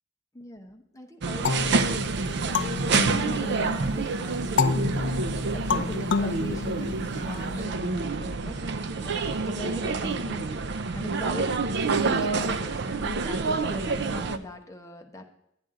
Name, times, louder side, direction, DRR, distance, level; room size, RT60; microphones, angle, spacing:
voice 1, 0.3-1.7 2.2-4.9 5.6-8.6 9.0-10.5 10.9-15.3, left 1 dB, 15° left, 3 dB, 0.9 m, -41 dB
sound 1, 1.2-14.4, right 4 dB, 60° right, 0.5 m, -28 dB
sound 2, 1.4-3.9 4.6-7.4, left 4 dB, 65° left, 0.5 m, -29 dB
11.5 x 9.1 x 3.8 m, 0.76 s
head